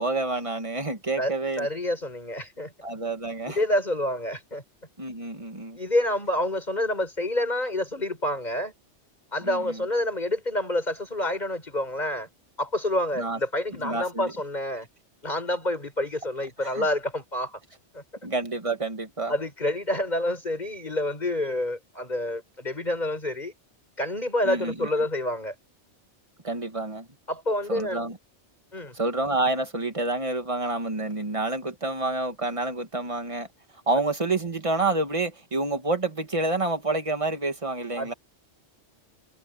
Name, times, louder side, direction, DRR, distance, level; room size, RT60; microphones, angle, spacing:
voice 1, 0.0-1.7 2.8-3.6 5.0-5.8 9.4-9.8 13.2-13.4 13.8-14.3 16.6-16.8 18.2-19.3 24.4-24.9 26.4-27.1 27.7-28.2 28.9-33.5 33.9-38.1, right 2 dB, 30° right, 1.9 m, -28 dB
voice 2, 1.6-2.7 3.5-4.6 5.7-8.7 9.3-12.3 12.6-14.9 15.2-17.6 17.9-18.0 19.3-23.5 24.0-25.5 27.3-28.1 28.7-28.9 38.0-38.2, left 1 dB, 40° left, 5.7 m, -28 dB
omnidirectional pair, 1.2 m